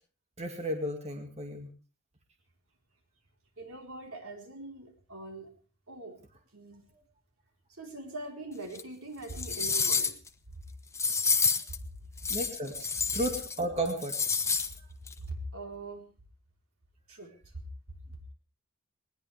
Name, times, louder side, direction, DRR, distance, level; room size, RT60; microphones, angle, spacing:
voice 1, 0.4-1.7 12.3-12.9 13.1-14.1, right 1 dB, 30° right, 3 dB, 2.2 m, -33 dB
voice 2, 3.6-5.5 5.9-6.2 6.5-6.8 7.8-10.1 15.2-16.1 17.1-17.3, right 2 dB, 70° right, 3 dB, 4.2 m, -42 dB
sound 1, 8.7-8.8 9.3-10.3 10.9-11.8 12.2-13.6 13.8-14.7 15.1-15.2, left 5 dB, 15° left, 0.9 m, -29 dB
20.0 x 20.0 x 3.5 m, 0.35 s
head